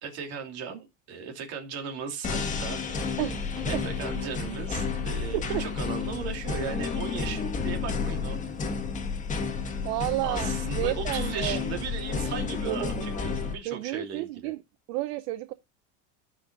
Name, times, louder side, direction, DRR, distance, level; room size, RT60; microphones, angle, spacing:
voice 1, 0.0-3.3 3.6-8.5 10.2-14.5, right 6 dB, 50° right, 2.9 m, -37 dB
sound 1, 2.2-13.5, left 5 dB, 25° left, 1.6 m, -31 dB
voice 2, 3.2-3.8 5.3-5.6 9.8-11.6 12.6-13.0 13.6-14.6 14.9-15.5, right 17 dB, 75° right, 0.6 m, -31 dB
sound 2, 3.6-6.4 6.7-6.8, right 1 dB, ahead, 1.3 m, -45 dB
17.0 x 5.7 x 2.5 m
cardioid pair, 150°, 33 cm